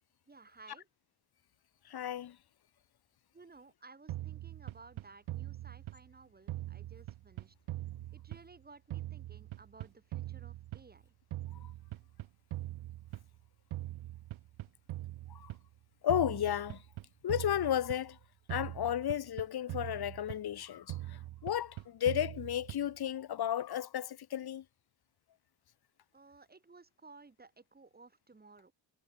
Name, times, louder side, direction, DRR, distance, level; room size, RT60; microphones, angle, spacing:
voice 1, 0.3-0.9 3.3-7.6 8.1-11.1 26.1-28.7, right 3 dB, 20° right, 6.0 m, -57 dB
voice 2, 1.9-2.4 15.3-15.5 16.0-16.8 17.2-18.2 18.5-24.6, left 10 dB, 55° left, 1.7 m, -33 dB
sound 1, 4.1-6.2 6.5-8.6 8.9-11.0 11.3-13.4 13.7-15.7 16.1-18.2 18.5-20.6 20.9-23.0, right 15 dB, 90° right, 1.6 m, -42 dB
cardioid pair, 140°, 46 cm